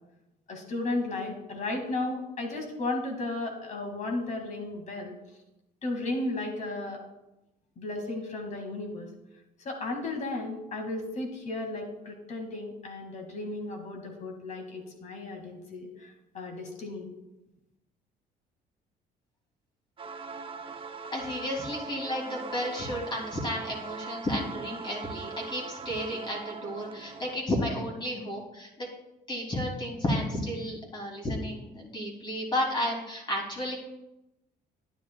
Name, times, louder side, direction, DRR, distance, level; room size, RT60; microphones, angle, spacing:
voice 1, 0.5-5.1 5.8-7.0 7.8-9.1 9.6-17.1, left 2 dB, 45° left, 2 dB, 2.1 m, -34 dB
sound 1, 20.0-27.4, right 5 dB, 30° right, 0.7 m, -41 dB
voice 2, 21.1-28.9 29.3-33.8, left 1 dB, 25° left, -1 dB, 2.8 m, -32 dB
10.5 x 9.9 x 2.3 m, 0.94 s
cardioid pair, 110°, 17 cm